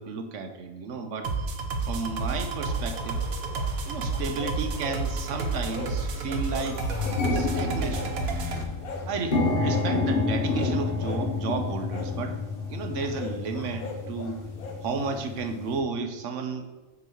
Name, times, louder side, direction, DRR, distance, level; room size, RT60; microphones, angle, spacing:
voice 1, 0.0-1.3 1.8-3.2 3.9-6.8 7.3-8.2 9.1-12.4 12.7-14.4 14.8-16.7, right 4 dB, 65° right, 6 dB, 1.0 m, -33 dB
sound 1, 1.2-8.6, right 3 dB, 80° right, 1.3 m, -30 dB
sound 2, 2.6-3.7 4.1-5.0 5.3-6.0 6.3-7.2 7.5-8.4 8.8-9.1 9.7-9.9 10.4-11.3 11.9-12.1 13.0-14.8, left 4 dB, 85° left, 1.4 m, -40 dB
sound 3, 4.2-4.3 5.1-5.3 5.7-5.8 6.1-15.8, left 3 dB, 45° left, 1.1 m, -30 dB
6.0 x 4.0 x 5.6 m, 1.2 s
omnidirectional pair, 1.5 m